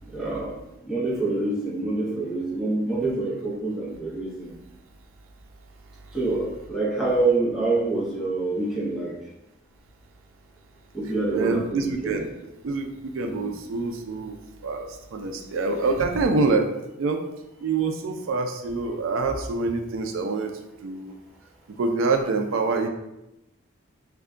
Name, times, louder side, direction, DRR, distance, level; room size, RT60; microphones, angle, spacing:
voice 1, 0.1-0.5 0.9-4.5 6.1-9.1 10.9-12.3 13.2-13.5, right 2 dB, ahead, -5 dB, 0.6 m, -26 dB
voice 2, 11.3-12.2 12.6-14.4 14.6-16.7 17.0-17.2 17.6-20.5 20.8-21.1 21.8-22.9, right 3 dB, 85° right, 5 dB, 0.4 m, -26 dB
3.4 x 2.1 x 3.6 m, 0.91 s
head